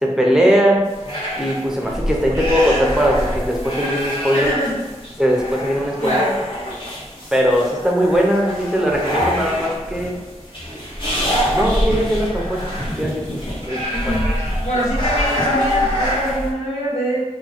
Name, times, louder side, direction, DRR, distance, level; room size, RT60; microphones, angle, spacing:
voice 1, 0.0-0.9 1.4-4.5 5.2-6.2 7.3-10.2 11.5-12.6 13.0-13.4 13.7-13.8, equal, 5° right, -1 dB, 0.7 m, -19 dB
sound 1, 0.9-16.5, equal, 45° left, 1.4 m, -25 dB
voice 2, 4.3-4.9 6.0-6.4 13.9-14.2 14.6-17.2, equal, 80° left, -6 dB, 1.3 m, -23 dB
3.7 x 2.3 x 4.3 m, 1.2 s
wide cardioid pair, 50°, 12 cm